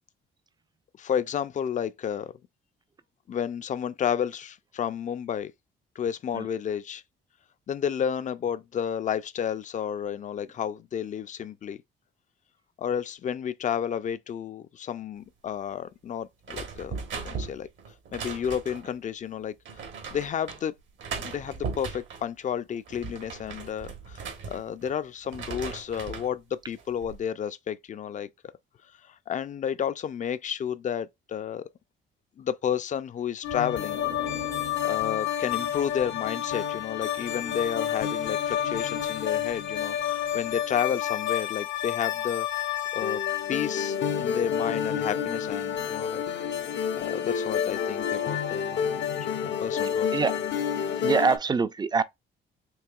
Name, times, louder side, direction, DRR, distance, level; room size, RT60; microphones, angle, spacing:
voice 1, 1.0-2.3 3.3-5.5 6.0-7.0 7.7-11.8 12.8-17.7 18.1-19.5 20.1-20.7 21.2-28.3 29.0-31.6 32.4-34.0 34.8-42.7 42.9-43.2 43.5-46.2 46.9-50.1, left 8 dB, 40° left, 0.4 m, -31 dB
sound 1, 16.4-18.9 19.7-20.6 21.0-22.3 22.7-24.9 25.2-26.3 26.8-27.2, right 5 dB, 70° right, 1.3 m, -38 dB
sound 2, 33.4-51.4, left 9 dB, 65° left, 0.7 m, -29 dB
voice 2, 51.0-52.0, right 5 dB, 20° right, 0.4 m, -24 dB
4.7 x 2.8 x 2.4 m
cardioid pair, 90°, 20 cm